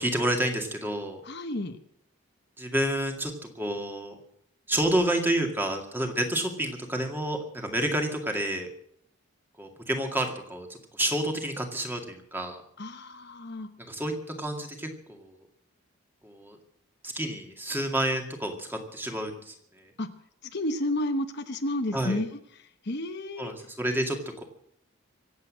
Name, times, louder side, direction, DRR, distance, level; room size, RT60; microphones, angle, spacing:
voice 1, 0.0-1.2 2.6-4.2 4.7-8.7 9.6-12.6 13.8-15.4 16.2-16.6 17.0-19.9 21.9-22.2 23.4-24.4, right 1 dB, 10° right, 3 dB, 2.1 m, -29 dB
voice 2, 1.2-1.8 12.8-13.7 20.0-20.1 20.5-22.3 22.6-23.5, left 1 dB, 50° left, 8 dB, 1.0 m, -31 dB
24.5 x 8.5 x 6.3 m, 0.69 s
head